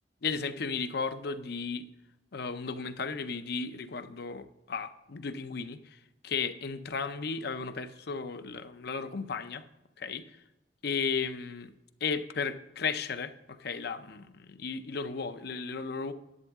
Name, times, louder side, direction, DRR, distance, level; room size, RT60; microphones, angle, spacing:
voice 1, 0.2-1.9 2.3-9.6 10.0-10.4 10.8-11.7 12.0-16.1, left 5 dB, 60° left, 10 dB, 0.6 m, -35 dB
11.0 x 8.0 x 3.6 m, 0.91 s
head